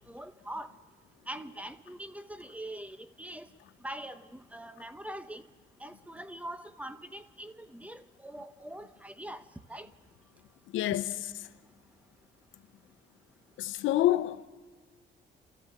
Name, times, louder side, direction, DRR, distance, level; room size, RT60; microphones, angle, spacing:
voice 1, 0.1-0.7 1.3-3.5 3.8-5.5 5.8-9.4 9.7-9.9, right 1 dB, 5° right, 0.9 m, -43 dB
voice 2, 10.7-11.1 13.6-14.5, left 14 dB, 85° left, 0.7 m, -27 dB
28.5 x 13.5 x 7.6 m
cardioid pair, 90°, 20 cm